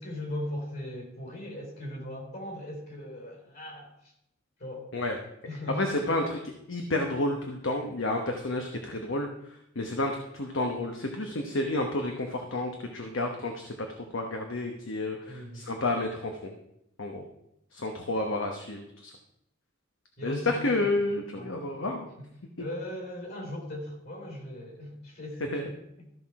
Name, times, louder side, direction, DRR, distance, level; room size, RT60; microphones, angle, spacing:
voice 1, 0.0-4.1 4.6-4.9 5.4-6.0 15.3-15.8 20.2-21.5 21.8-22.3 22.6-26.1, left 1 dB, 50° left, 1 dB, 3.7 m, -39 dB
voice 2, 5.8-6.4 6.7-9.3 9.7-13.9 14.1-16.5 17.0-17.2 17.7-19.1 20.2-22.1 25.5-25.6, left 2 dB, 65° left, 3 dB, 1.0 m, -30 dB
13.5 x 5.8 x 4.7 m, 0.79 s
head